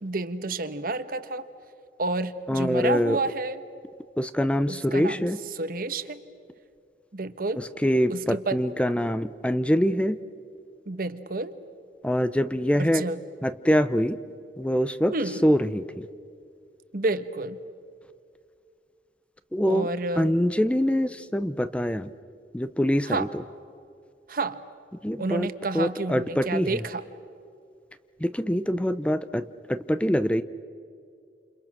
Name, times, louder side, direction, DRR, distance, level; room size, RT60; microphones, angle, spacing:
voice 1, 0.0-1.5 2.0-3.6 4.7-5.3 5.6-6.2 7.1-7.6 8.1-8.6 10.9-11.5 12.8-13.2 15.1-15.4 16.9-17.6 19.7-20.3 23.1-23.3 24.3-24.6 25.2-27.0, right 3 dB, 55° right, 11 dB, 1.1 m, -30 dB
voice 2, 2.5-3.2 4.2-5.4 7.6-10.2 12.0-13.0 13.4-14.2 14.6-15.1 15.4-16.1 19.5-19.9 20.2-22.1 22.5-23.3 25.0-25.5 25.7-26.8 28.2-30.4, equal, 5° left, 12 dB, 0.5 m, -24 dB
29.0 x 28.5 x 6.1 m, 2.4 s
head